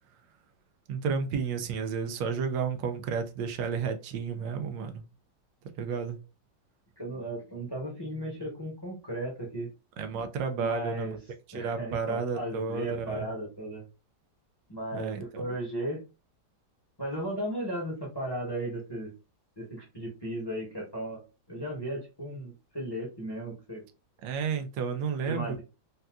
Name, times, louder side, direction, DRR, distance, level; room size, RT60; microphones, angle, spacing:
voice 1, 0.9-5.0 5.8-6.2 10.0-11.2 11.5-13.3 14.9-15.4 24.2-25.6, right 6 dB, 90° right, 1.3 m, -32 dB
voice 2, 7.0-9.7 10.6-11.2 11.5-13.8 14.7-16.0 17.0-19.1 19.6-21.2 21.5-23.8 25.2-25.6, right 1 dB, 20° left, 0.7 m, -36 dB
4.0 x 2.3 x 2.3 m
omnidirectional pair, 1.9 m